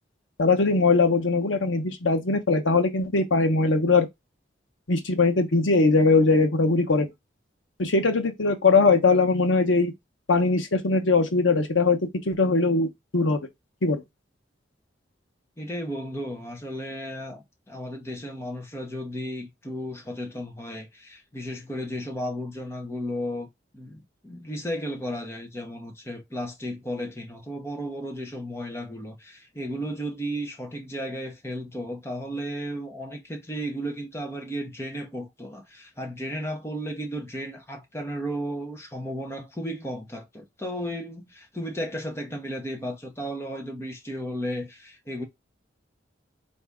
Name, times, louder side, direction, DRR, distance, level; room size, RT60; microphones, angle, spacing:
voice 1, 0.4-4.1 4.9-7.1 7.8-9.9 10.3-12.9 13.1-13.4 13.8-14.0, left 3 dB, 85° left, 0.9 m, -21 dB
voice 2, 15.6-23.5 23.7-45.2, equal, 15° left, 0.9 m, -34 dB
4.2 x 2.6 x 3.5 m
head